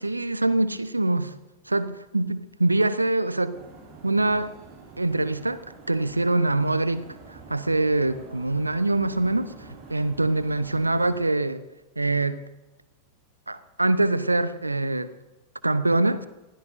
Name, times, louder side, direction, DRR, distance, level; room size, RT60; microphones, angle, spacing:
voice 1, 0.0-1.3 1.7-3.6 4.0-4.5 5.0-9.5 9.9-11.6 12.0-12.4 13.5-15.1 15.6-16.3, right 2 dB, 85° right, 0.8 m, -24 dB
sound 1, 3.5-11.2, right 4 dB, 35° right, 7.1 m, -47 dB
26.5 x 16.5 x 2.7 m
figure-of-eight pair, 90°, 0 cm